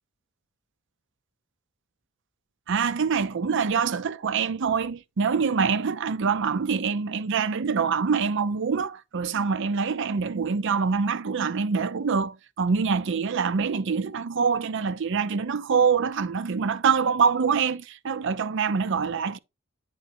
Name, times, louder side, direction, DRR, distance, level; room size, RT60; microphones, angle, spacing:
voice 1, 2.7-19.4, right 5 dB, 60° right, 0.5 m, -25 dB
9.3 x 3.9 x 4.2 m
head